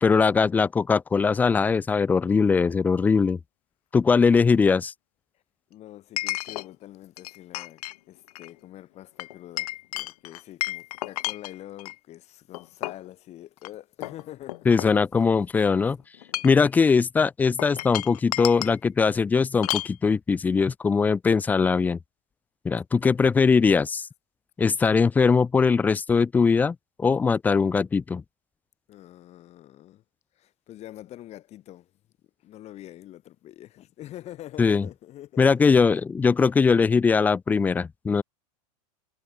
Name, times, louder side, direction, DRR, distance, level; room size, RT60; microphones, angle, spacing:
voice 1, 0.0-3.4 3.9-4.9 14.7-16.0 16.4-22.0 22.6-24.1 24.6-28.2 34.6-34.9 35.4-38.2, left 5 dB, 10° left, 0.3 m, -21 dB
Chink clink, 2.7-2.8 6.2-6.7 7.2-8.0 8.3-8.5 9.2-12.0 12.5-13.1 13.6-13.7 14.0-15.4 16.1-16.7 17.6-18.8 19.6-20.0, left 17 dB, 75° left, 0.6 m, -32 dB
voice 2, 5.7-14.7 23.1-23.5 28.9-30.0 30.3-31.9 32.4-35.7, left 13 dB, 35° left, 6.7 m, -45 dB
supercardioid pair, 140°, 19 cm